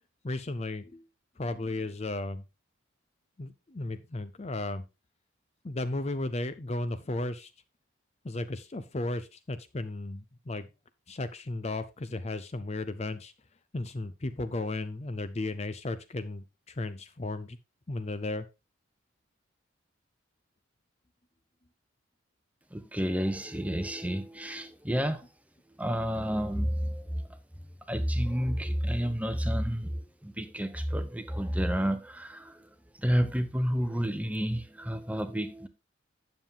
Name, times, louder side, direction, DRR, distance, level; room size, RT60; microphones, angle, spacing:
voice 1, 0.2-1.0 1.4-2.4 3.4-4.8 5.6-7.5 8.2-10.7 11.1-13.3 13.7-17.6 17.9-18.4, left 2 dB, 30° left, 0.5 m, -34 dB
voice 2, 22.7-25.2 25.8-27.3 27.9-32.7 33.0-35.7, equal, 5° right, 0.8 m, -30 dB
9.5 x 7.2 x 3.6 m
head